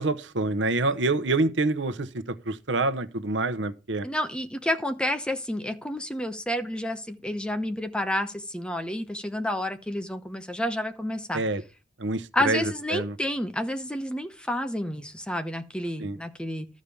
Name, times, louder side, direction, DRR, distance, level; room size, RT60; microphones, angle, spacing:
voice 1, 0.0-4.1 11.3-11.6 12.0-13.2 16.0-16.2, right 2 dB, 80° right, 0.9 m, -27 dB
voice 2, 4.0-11.4 12.3-16.7, left 1 dB, 5° left, 0.8 m, -30 dB
13.0 x 5.2 x 6.9 m
head